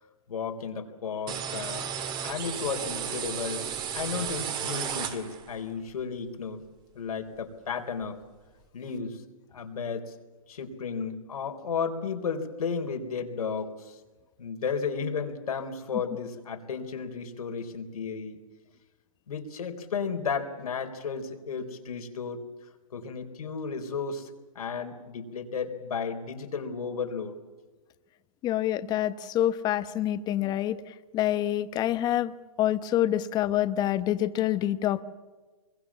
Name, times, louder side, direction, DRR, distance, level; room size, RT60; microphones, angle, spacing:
voice 1, 0.3-1.9 2.2-3.7 3.9-6.6 7.0-8.2 8.7-9.2 9.5-10.1 10.5-14.0 14.4-18.4 19.3-22.4 22.9-24.3 24.6-27.4, left 5 dB, 85° left, 4 dB, 3.9 m, -33 dB
sound 1, 1.3-5.6, right 8 dB, 25° right, 2.0 m, -34 dB
voice 2, 28.4-35.0, left 12 dB, 20° left, 13 dB, 1.0 m, -27 dB
25.5 x 22.5 x 7.3 m, 1.3 s
hypercardioid pair, 145°, 18 cm